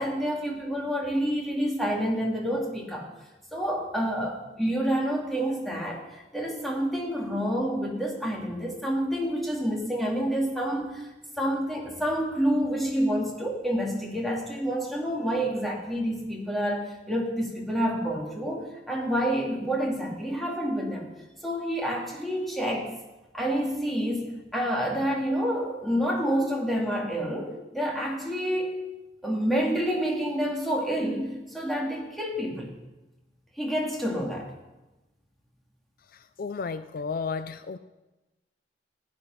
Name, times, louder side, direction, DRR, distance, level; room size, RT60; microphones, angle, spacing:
voice 1, 0.0-3.1 3.5-6.0 6.3-11.1 11.4-21.1 21.4-22.9 23.3-28.7 29.2-32.7 33.6-34.5, equal, ahead, -2 dB, 2.6 m, -28 dB
voice 2, 36.4-37.8, left 5 dB, 55° left, 12 dB, 0.5 m, -32 dB
16.0 x 10.5 x 5.7 m, 1.1 s
head